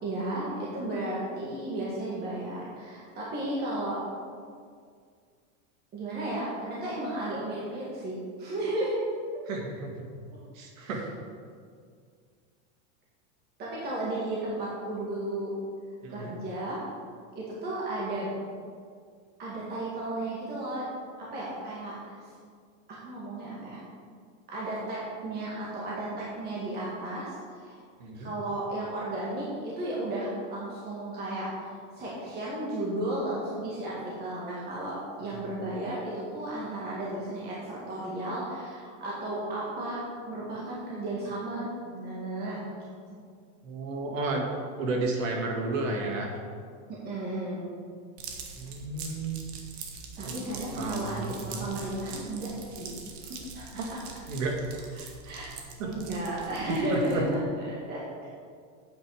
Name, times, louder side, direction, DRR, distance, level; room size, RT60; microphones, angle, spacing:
voice 1, 0.0-4.0 5.9-9.0 10.8-10.9 13.6-15.5 16.1-16.8 17.4-18.3 19.4-20.9 21.2-22.0 22.9-23.8 24.5-27.8 28.1-31.5 32.0-40.0 40.3-42.6 46.9-47.7 50.2-52.9 53.2-53.8 55.0-55.5 55.8-58.3, right 1 dB, 25° right, -6 dB, 1.9 m, -34 dB
voice 2, 9.5-10.1 10.5-11.0 16.0-16.3 28.0-28.3 35.4-35.5 43.6-44.5 44.8-46.4 48.5-49.6 50.2-50.3 50.8-51.7 53.8-53.9 54.3-54.5 55.8-55.9 56.9-57.2, right 3 dB, 90° right, 1 dB, 2.1 m, -32 dB
sound 1, 48.2-57.3, right 5 dB, 55° right, 1.6 m, -43 dB
9.0 x 8.8 x 4.9 m, 2.1 s
supercardioid pair, 170°, 38 cm